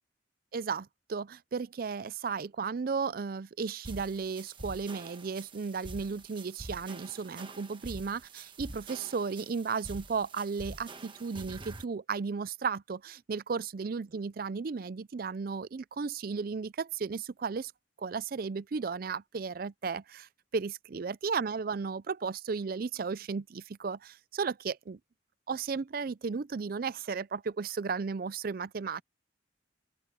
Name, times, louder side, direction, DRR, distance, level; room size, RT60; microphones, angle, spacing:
voice 1, 0.5-17.7 18.0-25.0 25.5-29.0, right 5 dB, 50° right, 0.4 m, -34 dB
sound 1, 3.8-11.8, right 2 dB, 25° right, 1.3 m, -46 dB
open air
head